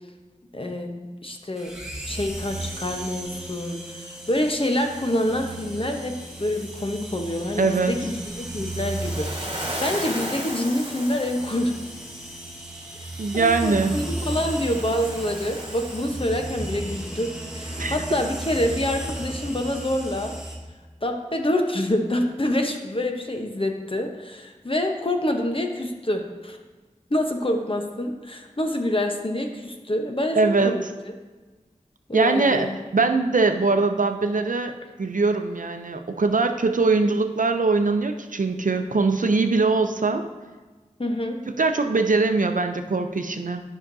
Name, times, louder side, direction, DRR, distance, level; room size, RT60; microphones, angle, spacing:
voice 1, 0.5-1.7 2.0-6.1 6.4-11.7 13.3-20.3 21.0-26.6 27.1-31.1 32.1-32.8 41.0-41.4, left 1 dB, 40° left, 3 dB, 0.9 m, -26 dB
sound 1, 1.6-20.6, right 1 dB, 5° right, 1.5 m, -35 dB
voice 2, 7.6-8.0 13.2-14.0 17.8-18.0 30.4-30.7 32.1-32.7 32.9-34.7 35.0-40.2 41.6-43.6, right 3 dB, 80° right, 7 dB, 0.6 m, -22 dB
Waves surf, 8.8-12.0 13.8-16.8, equal, 40° right, 1.5 m, -35 dB
12.0 x 5.8 x 2.7 m, 1.3 s
wide cardioid pair, 50°, 13 cm